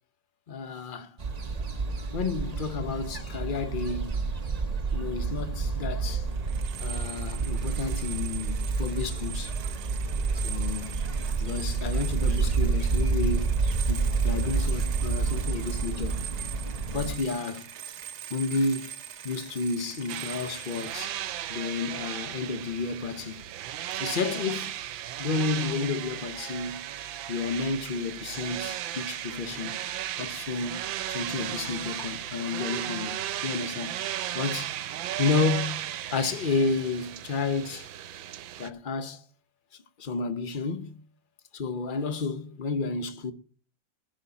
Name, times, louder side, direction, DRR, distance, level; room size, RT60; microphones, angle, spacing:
voice 1, 0.5-1.2 2.1-4.2 4.9-6.3 6.8-9.5 10.4-11.0 11.4-13.6 13.9-16.2 16.9-17.7 18.3-18.9 19.2-21.2 21.5-23.4 24.0-24.8 25.2-26.8 27.3-29.9 30.2-30.8 31.1-34.0 34.3-34.7 35.2-35.8 36.1-37.9 38.6-39.2 39.7-41.0 41.5-43.3, left 4 dB, 40° left, 0.7 m, -31 dB
sound 1, 1.2-17.2, right 4 dB, 30° right, 0.8 m, -29 dB
sound 2, 5.6-5.7 6.1-21.0, right 9 dB, 60° right, 0.7 m, -42 dB
sound 3, 20.1-38.7, right 12 dB, 85° right, 1.5 m, -35 dB
11.0 x 6.4 x 8.3 m
omnidirectional pair, 2.0 m